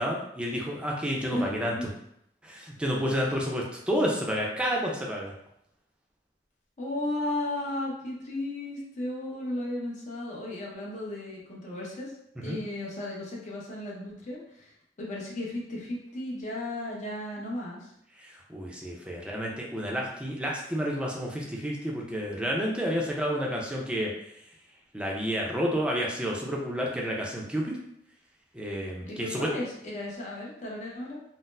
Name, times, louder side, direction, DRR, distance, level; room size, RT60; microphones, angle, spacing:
voice 1, 0.0-1.7 2.4-5.3 12.4-12.6 18.2-24.1 24.9-27.7 28.5-29.5, equal, 5° right, -2 dB, 0.5 m, -30 dB
voice 2, 1.2-1.9 6.8-12.1 12.4-14.7 15.0-17.9 29.0-31.2, left 1 dB, 45° left, -4 dB, 0.8 m, -35 dB
4.0 x 2.0 x 2.6 m, 0.75 s
head